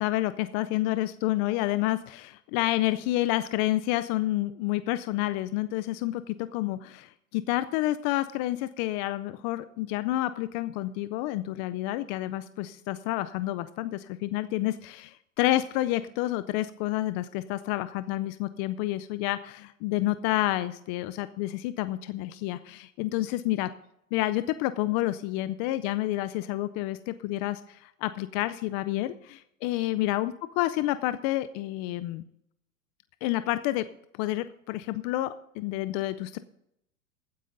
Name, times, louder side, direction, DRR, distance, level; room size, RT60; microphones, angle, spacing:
voice 1, 0.0-23.7 24.1-32.2 33.2-33.8 34.1-36.4, left 16 dB, 30° left, 13 dB, 0.4 m, -29 dB
15.0 x 9.5 x 3.9 m, 0.76 s
hypercardioid pair, 130°, 45 cm